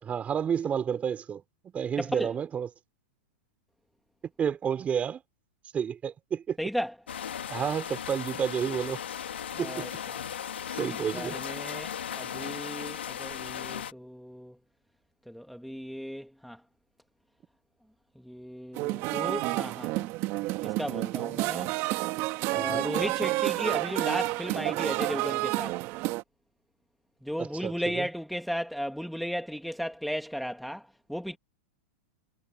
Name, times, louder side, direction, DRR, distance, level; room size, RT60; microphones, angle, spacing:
voice 1, 0.0-2.7 4.4-5.2 5.7-6.6 7.5-9.0 9.6-10.0 10.7-11.4 22.5-22.9 27.4-28.1, right 8 dB, 25° right, 3.5 m, -31 dB
voice 2, 2.0-2.3 6.6-6.9 9.5-10.2 10.8-14.6 15.3-16.6 18.2-20.1 20.6-21.7 22.5-25.8 27.2-31.4, equal, ahead, 2.1 m, -35 dB
sound 1, 7.1-13.9, left 9 dB, 90° left, 2.7 m, -37 dB
sound 2, 18.7-26.2, right 20 dB, 45° right, 1.9 m, -30 dB
hypercardioid pair, 120°, 6 cm